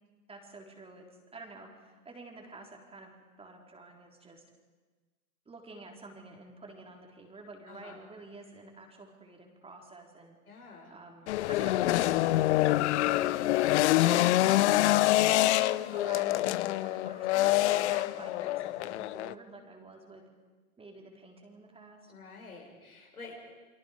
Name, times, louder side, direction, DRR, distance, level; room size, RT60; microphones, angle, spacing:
voice 1, 0.3-3.1 3.4-4.4 5.5-10.4 10.9-14.5 14.8-15.2 15.5-20.2 20.8-22.1, right 3 dB, 15° right, 1 dB, 3.8 m, -49 dB
voice 2, 7.7-8.0 10.5-10.9 22.1-23.3, left 4 dB, 85° left, -1 dB, 6.8 m, -49 dB
sound 1, 11.3-19.3, left 16 dB, 50° left, 0.8 m, -26 dB
29.5 x 23.5 x 5.1 m, 1.3 s
figure-of-eight pair, 100°, 43 cm